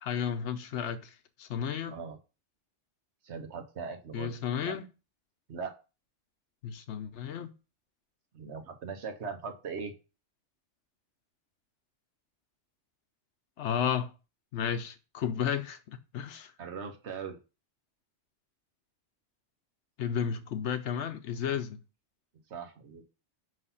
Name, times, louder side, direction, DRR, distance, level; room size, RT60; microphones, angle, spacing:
voice 1, 0.0-2.0 4.1-4.8 6.6-7.5 13.6-14.1 14.5-15.8 16.1-16.5 20.0-21.8, left 8 dB, 80° left, 1.0 m, -32 dB
voice 2, 1.9-2.2 3.2-4.4 4.6-4.8 5.5-5.7 8.3-10.0 16.6-17.4 22.5-23.0, right 5 dB, 70° right, 1.3 m, -40 dB
5.7 x 3.2 x 5.5 m
omnidirectional pair, 1.2 m